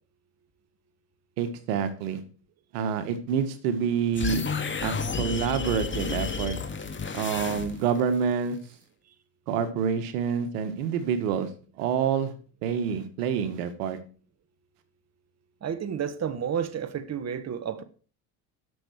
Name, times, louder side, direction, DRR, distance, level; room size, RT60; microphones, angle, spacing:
voice 1, 1.4-2.2 2.7-4.5 4.8-6.6 7.1-8.6 9.5-11.5 11.8-12.3 12.6-14.0, right 7 dB, 80° right, 1.8 m, -27 dB
sound 1, 4.1-8.0, left 5 dB, 25° left, 2.1 m, -31 dB
voice 2, 15.6-17.8, right 8 dB, 35° right, 1.4 m, -31 dB
11.5 x 7.0 x 6.4 m
supercardioid pair, 80°, 46 cm